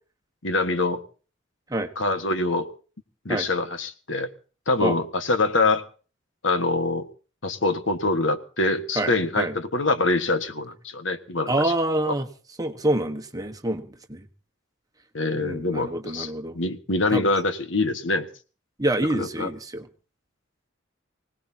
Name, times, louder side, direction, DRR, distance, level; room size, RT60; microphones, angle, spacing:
voice 1, 0.4-1.0 1.9-2.7 3.2-4.3 4.7-5.8 6.4-7.1 7.4-11.7 12.1-12.2 15.1-18.3 19.1-19.5, left 2 dB, 80° left, 8 dB, 1.7 m, -24 dB
voice 2, 8.9-9.5 11.5-12.3 12.6-14.2 15.3-16.6 17.1-17.3 18.8-19.9, right 1 dB, 20° right, 5 dB, 1.4 m, -27 dB
25.0 x 18.5 x 2.9 m, 0.37 s
head